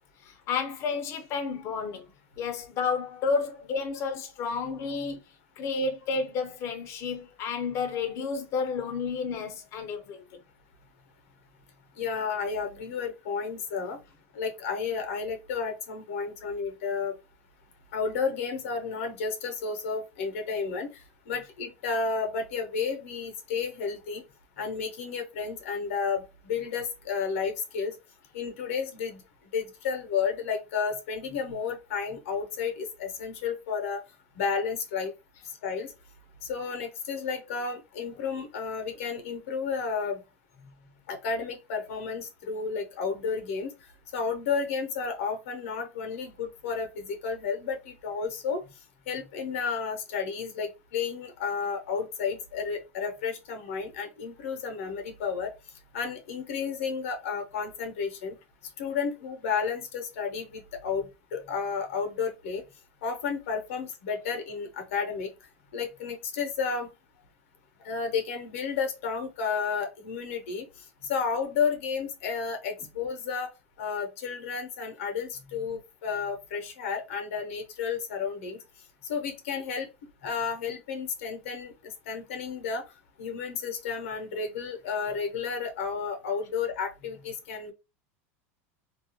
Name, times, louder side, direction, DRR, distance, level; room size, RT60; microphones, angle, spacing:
voice 1, 0.2-2.0 2.4-5.2 5.6-10.2, left 5 dB, 40° left, 0.6 m, -31 dB
voice 2, 12.0-14.0 14.3-17.1 17.9-21.0 21.3-24.2 24.6-27.9 28.3-29.2 29.5-34.0 34.4-35.1 35.6-35.9 36.4-40.2 41.1-43.7 44.1-48.6 49.1-55.5 55.9-58.4 58.8-62.6 63.0-65.3 65.7-66.9 67.8-70.7 71.0-73.5 73.8-78.6 79.1-79.9 80.2-82.8 83.2-87.7, left 5 dB, 80° left, 0.7 m, -32 dB
2.3 x 2.3 x 2.7 m
supercardioid pair, 125°, 7 cm